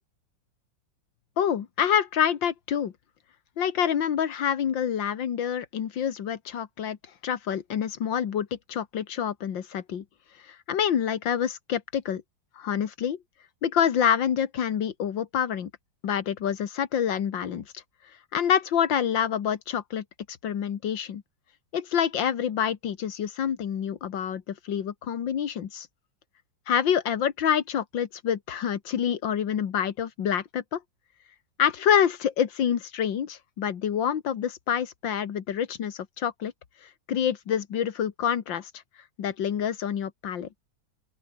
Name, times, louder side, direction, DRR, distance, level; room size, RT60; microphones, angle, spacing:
voice 1, 1.4-2.9 3.6-7.0 7.2-10.0 10.5-12.2 12.6-13.2 13.6-15.7 16.0-17.8 18.3-21.2 21.7-25.9 26.7-30.8 31.6-36.5 37.1-38.7 39.2-40.5, left 8 dB, 75° left, 2.2 m, -27 dB
open air
omnidirectional pair, 2.0 m